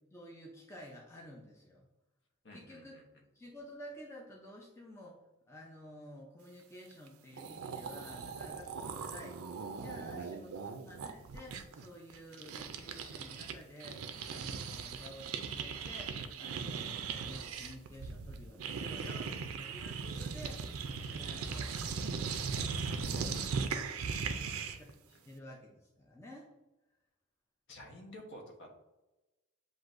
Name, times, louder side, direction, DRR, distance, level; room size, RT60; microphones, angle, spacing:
voice 1, 0.1-1.9 2.5-3.0 3.3-5.2 5.5-9.4 9.7-20.7 20.9-23.4 24.6-26.5, equal, 10° left, -2 dB, 0.5 m, -52 dB
voice 2, 2.4-3.0 10.1-10.3 24.3-24.8 27.7-28.8, left 1 dB, 55° left, 1 dB, 1.0 m, -51 dB
sound 1, 7.1-7.2 7.3-13.5 13.8-24.9, right 5 dB, 75° right, 0.4 m, -39 dB
7.6 x 2.6 x 2.5 m, 1.0 s
head